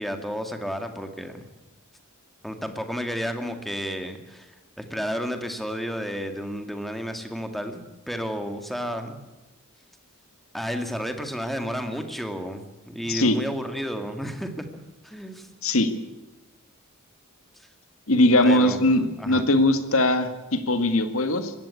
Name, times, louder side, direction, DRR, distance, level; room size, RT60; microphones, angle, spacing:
voice 1, 0.0-1.5 2.4-9.2 10.5-15.5 17.6-17.7 18.4-18.8 19.2-19.5, equal, ahead, 6 dB, 2.1 m, -32 dB
voice 2, 13.1-13.4 15.6-15.9 18.1-21.5, left 1 dB, 70° left, 9 dB, 2.0 m, -20 dB
21.5 x 16.5 x 8.5 m, 1.1 s
head